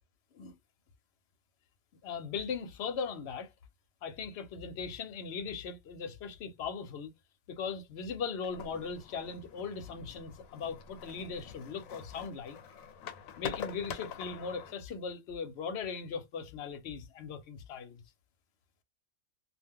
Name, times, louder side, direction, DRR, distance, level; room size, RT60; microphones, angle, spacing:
voice 1, 2.0-3.5 4.0-7.1 7.5-12.6 13.4-18.0, left 5 dB, 60° left, 0.9 m, -39 dB
sound 1, 8.4-14.7, left 7 dB, 85° left, 1.1 m, -45 dB
2.4 x 2.2 x 3.6 m
omnidirectional pair, 1.4 m